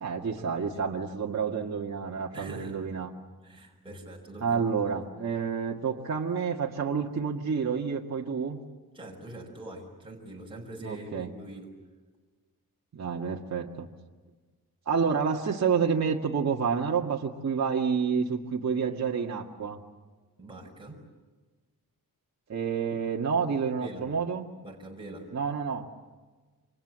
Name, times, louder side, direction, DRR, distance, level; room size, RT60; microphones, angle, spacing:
voice 1, 0.0-3.1 4.4-8.6 10.8-11.3 12.9-13.9 14.9-19.8 22.5-24.5 25.3-25.9, right 6 dB, 50° right, -1 dB, 1.8 m, -29 dB
voice 2, 2.3-2.9 3.4-4.6 8.9-11.8 20.4-21.0 23.8-24.1 24.6-25.3, right 1 dB, 15° right, -1 dB, 5.4 m, -43 dB
29.0 x 26.0 x 7.6 m, 1.3 s
wide cardioid pair, 150°, 35 cm